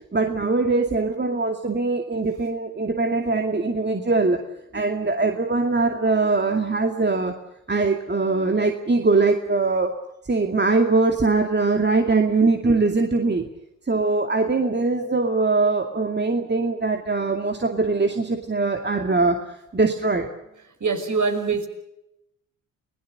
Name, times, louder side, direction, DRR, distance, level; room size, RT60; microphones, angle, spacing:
voice 1, 0.1-4.4 4.7-7.3 7.7-9.9 10.3-13.5 13.9-19.4 19.7-20.3, right 3 dB, 25° right, 4 dB, 2.4 m, -22 dB
voice 2, 20.8-21.7, right 4 dB, 45° right, 6 dB, 5.6 m, -23 dB
29.5 x 18.5 x 6.5 m, 0.87 s
hypercardioid pair, 45°, 40 cm